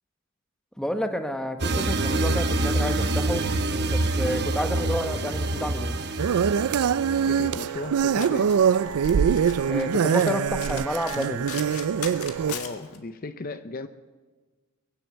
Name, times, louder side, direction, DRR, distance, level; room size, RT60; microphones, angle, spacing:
voice 1, 0.8-3.5 3.9-6.0 9.7-11.5, equal, 5° left, 6 dB, 0.9 m, -30 dB
sound 1, 1.6-7.6, right 2 dB, 50° right, 0.9 m, -26 dB
sound 2, 6.2-12.5, right 7 dB, 85° right, 0.4 m, -23 dB
Domestic sounds home sounds, 7.0-13.0, left 7 dB, 85° left, 1.7 m, -41 dB
voice 2, 7.3-8.5 12.4-13.9, left 3 dB, 40° left, 10 dB, 0.5 m, -36 dB
22.5 x 7.8 x 8.0 m, 1.4 s
head